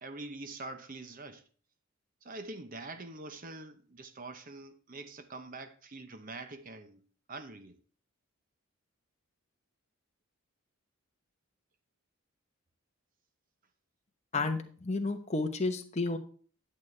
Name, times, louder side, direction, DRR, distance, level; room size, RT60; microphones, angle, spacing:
voice 1, 0.0-1.4 2.2-7.0 7.3-7.8, right 2 dB, 40° right, 0.8 m, -44 dB
voice 2, 14.3-16.2, left 3 dB, 30° left, 0.9 m, -31 dB
10.5 x 7.5 x 3.2 m
head